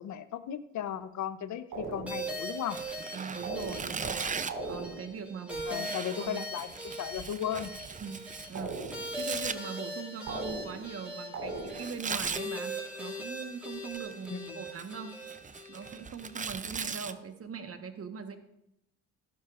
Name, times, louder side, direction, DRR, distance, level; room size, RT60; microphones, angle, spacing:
voice 1, 0.0-2.8 5.7-7.7 14.3-14.6, left 9 dB, 65° left, 12 dB, 0.8 m, -36 dB
sound 1, 1.7-2.4 3.4-4.1 4.5-5.2 8.5-9.3 10.3-11.0 11.3-12.1, right 2 dB, 75° right, 3.9 m, -39 dB
sound 2, 2.1-16.5, equal, 5° right, 4.4 m, -41 dB
Tearing, 2.7-4.7 5.5-9.6 11.7-12.5 13.7-14.3 14.7-17.1, right 5 dB, 25° right, 0.6 m, -38 dB
voice 2, 3.1-4.3 4.6-6.4 8.0-8.8 9.2-15.1 15.7-18.4, right 6 dB, 45° right, 7 dB, 1.4 m, -41 dB
16.0 x 11.5 x 2.6 m, 0.83 s
cardioid pair, 75°, 31 cm